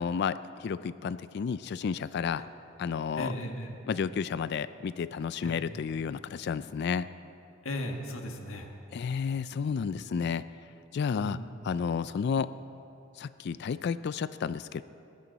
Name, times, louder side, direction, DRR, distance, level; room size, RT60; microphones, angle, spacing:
voice 1, 0.0-2.4 2.8-3.3 3.9-7.1 8.9-10.4 10.9-12.6 13.2-14.8, left 6 dB, 55° left, 15 dB, 0.3 m, -31 dB
voice 2, 3.1-3.7 5.4-5.6 7.6-8.7 9.9-10.0 11.1-11.5, left 1 dB, 85° left, 3 dB, 1.6 m, -37 dB
21.0 x 16.0 x 4.1 m, 2.9 s
head